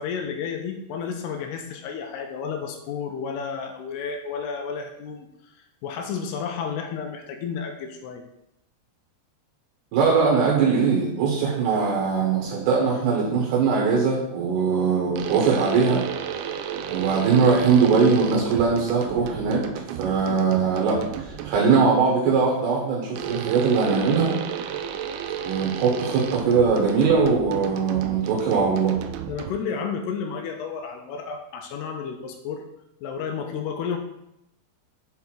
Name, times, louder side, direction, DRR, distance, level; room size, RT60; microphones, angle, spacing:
voice 1, 0.0-8.2 29.2-32.6 33.0-34.0, left 6 dB, 80° left, 4 dB, 2.5 m, -32 dB
voice 2, 9.9-16.0 16.9-24.4 25.4-29.0, right 5 dB, 70° right, -2 dB, 3.1 m, -21 dB
sound 1, 15.2-21.8 23.2-29.8, right 9 dB, 85° right, 2.9 m, -33 dB
7.8 x 3.6 x 5.9 m, 0.82 s
omnidirectional pair, 5.2 m